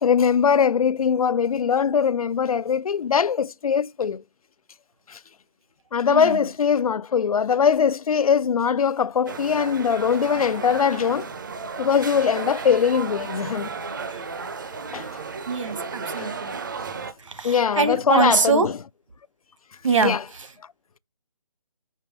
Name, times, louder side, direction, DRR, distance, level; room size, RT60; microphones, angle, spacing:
voice 1, 0.0-4.2 5.1-5.2 5.9-11.3 11.8-13.7 14.9-15.1 16.2-16.3 17.4-18.7 20.0-20.2, left 7 dB, 75° left, 0.4 m, -21 dB
sound 1, 9.3-17.1, right 5 dB, 35° right, 0.6 m, -34 dB
voice 2, 15.5-16.6 17.2-18.7 19.8-20.5, right 4 dB, 60° right, 1.2 m, -23 dB
6.0 x 5.5 x 3.1 m
figure-of-eight pair, 165°, 19 cm